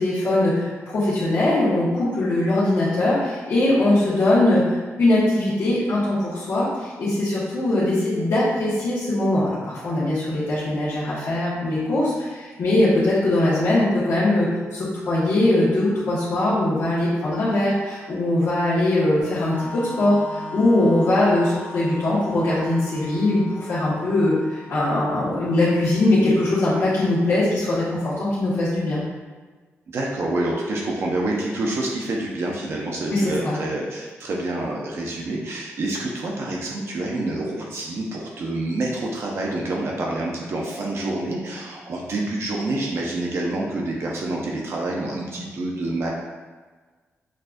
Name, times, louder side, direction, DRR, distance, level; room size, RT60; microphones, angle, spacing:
voice 1, 0.0-29.0 33.1-33.6, left 1 dB, 65° left, -12 dB, 1.3 m, -21 dB
Organ, 19.2-26.7, left 1 dB, 30° left, 0.7 m, -38 dB
voice 2, 29.9-46.1, right 2 dB, 60° right, -2 dB, 0.6 m, -27 dB
6.4 x 2.3 x 2.5 m, 1.4 s
cardioid pair, 100°, 5 cm